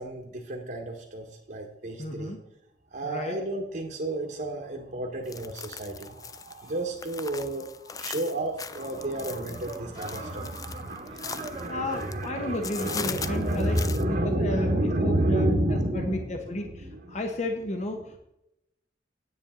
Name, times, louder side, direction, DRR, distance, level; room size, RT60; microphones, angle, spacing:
voice 1, 0.0-2.4 2.9-17.2, right 1 dB, 55° right, 0 dB, 1.3 m, -30 dB
voice 2, 2.0-2.4 3.0-3.4 11.7-18.2, left 1 dB, 40° left, 4 dB, 0.9 m, -33 dB
sound 1, 5.3-12.3 12.6-14.0, left 6 dB, 20° left, 0.3 m, -40 dB
sound 2, 8.7-14.6, right 2 dB, 30° right, 0.9 m, -45 dB
9.7 x 8.7 x 3.7 m, 0.84 s
head